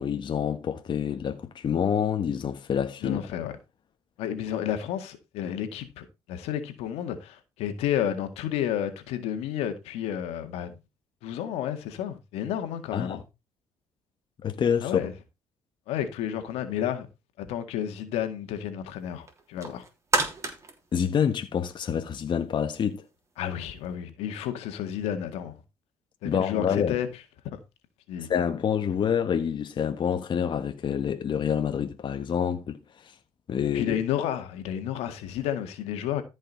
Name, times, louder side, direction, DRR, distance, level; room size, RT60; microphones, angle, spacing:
voice 1, 0.0-3.2 12.9-13.2 14.4-15.1 20.9-23.0 26.2-27.0 28.3-33.1 33.5-34.0, left 8 dB, 50° left, 1.4 m, -27 dB
voice 2, 3.0-3.5 4.2-10.8 11.2-13.2 14.8-15.1 15.9-17.1 17.4-19.8 23.4-25.6 26.2-27.1 27.4-27.6 28.1-28.3 33.7-36.2, left 10 dB, 85° left, 1.9 m, -31 dB
sound 1, 19.3-22.0 22.5-22.6, right 3 dB, 30° right, 3.4 m, -30 dB
14.0 x 5.5 x 4.0 m
cardioid pair, 85°, 10 cm